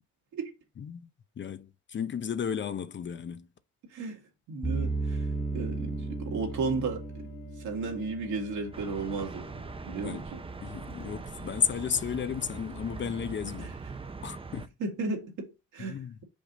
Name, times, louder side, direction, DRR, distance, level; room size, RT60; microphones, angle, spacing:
voice 1, 0.8-1.1 1.4-3.5 10.0-10.2 10.6-13.7 14.2-14.7 15.8-16.2, left 7 dB, 40° left, 0.6 m, -33 dB
voice 2, 3.8-7.3 7.5-9.5 9.8-10.4 13.6-13.7 14.8-16.0, right 4 dB, 80° right, 2.1 m, -34 dB
sound 1, 4.6-9.7, right 3 dB, 5° left, 0.9 m, -35 dB
Bowed string instrument, 4.7-12.0, left 11 dB, 85° left, 1.8 m, -53 dB
sound 2, 8.7-14.7, right 4 dB, 20° right, 0.6 m, -41 dB
5.3 x 5.1 x 3.9 m
cardioid pair, 90°, 30 cm